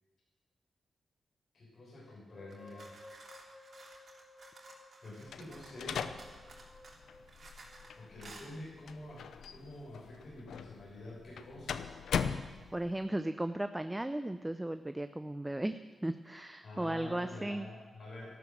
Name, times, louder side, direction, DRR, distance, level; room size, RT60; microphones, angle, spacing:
voice 1, 1.5-3.0 5.0-6.0 7.9-12.0 16.6-18.4, left 1 dB, 60° left, -5 dB, 6.7 m, -48 dB
sound 1, 2.3-8.3, left 2 dB, 35° left, 2.6 m, -57 dB
sound 2, 2.5-5.8 6.2-7.9 8.2-8.5, right 3 dB, 60° right, 3.4 m, -54 dB
sound 3, 5.3-13.1, left 7 dB, 80° left, 0.7 m, -40 dB
voice 2, 12.7-17.7, right 1 dB, 15° right, 10 dB, 0.7 m, -36 dB
13.0 x 12.5 x 7.8 m, 1.4 s
supercardioid pair, 45°, 0 cm